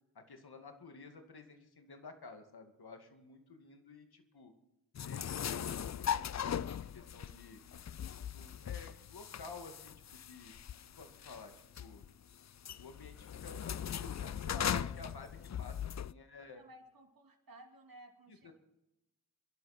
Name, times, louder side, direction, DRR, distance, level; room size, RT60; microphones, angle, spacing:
voice 1, 0.1-4.5 5.0-7.6 8.3-10.5 11.0-12.1 12.8-16.6 18.4-18.5, left 4 dB, 75° left, 5 dB, 2.3 m, -52 dB
sound 1, 4.9-16.1, left 9 dB, 45° left, 0.5 m, -39 dB
voice 2, 16.4-18.5, right 1 dB, 60° right, 3 dB, 2.8 m, -57 dB
27.0 x 11.5 x 4.4 m, 0.92 s
cardioid pair, 40°, 39 cm